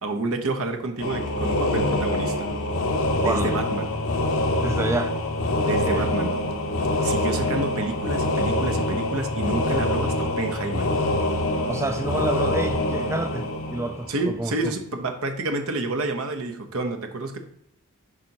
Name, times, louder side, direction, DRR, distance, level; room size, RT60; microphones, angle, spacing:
voice 1, 0.0-2.5 3.2-4.0 5.6-6.3 7.0-11.0 14.1-17.4, right 2 dB, 75° right, 0.9 m, -29 dB
sound 1, 1.0-14.5, left 1 dB, 70° left, 0.9 m, -25 dB
voice 2, 3.2-3.5 4.6-5.2 5.7-6.1 11.7-14.7, right 2 dB, 15° right, 0.4 m, -28 dB
8.5 x 5.4 x 2.9 m
head